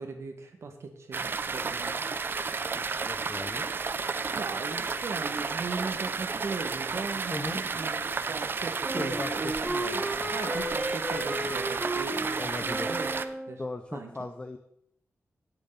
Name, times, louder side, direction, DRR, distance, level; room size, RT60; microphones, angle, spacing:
voice 1, 0.0-2.1 4.3-9.6 9.9-10.0 10.3-13.1 13.5-13.6 13.9-14.1, right 4 dB, 60° right, 5 dB, 1.7 m, -38 dB
sound 1, 1.1-13.2, right 4 dB, 45° right, 0.5 m, -32 dB
voice 2, 2.7-3.7 7.3-7.6 8.9-10.3 12.4-12.9 13.6-14.6, left 2 dB, 20° left, 7 dB, 0.6 m, -38 dB
Wind instrument woodwind instrument, 8.8-13.6, right 1 dB, 10° right, 1.3 m, -34 dB
17.0 x 6.9 x 4.1 m, 0.74 s
wide cardioid pair, 180°, 5 cm